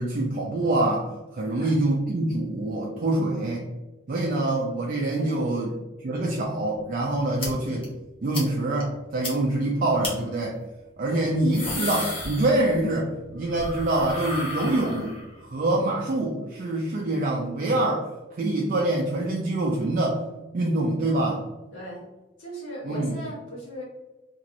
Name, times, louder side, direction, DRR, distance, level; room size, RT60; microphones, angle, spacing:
voice 1, 0.0-3.6 4.1-5.7 6.0-7.9 8.2-10.6 11.0-15.2 15.4-18.1 18.4-20.2 20.5-21.4 22.8-23.1, right 2 dB, 45° right, -2 dB, 0.4 m, -25 dB
voice 2, 1.4-1.8 3.1-3.5 5.2-5.7 11.0-11.3 21.7-22.0 22.4-23.8, equal, 80° left, -6 dB, 1.3 m, -39 dB
sound 1, 7.4-7.5 7.8-7.9 8.3-8.5 8.8-8.9 9.2-9.3 10.0-10.1 11.3-12.9 13.2-15.4, left 2 dB, 30° left, 0.8 m, -33 dB
2.9 x 2.9 x 2.5 m, 1.1 s
head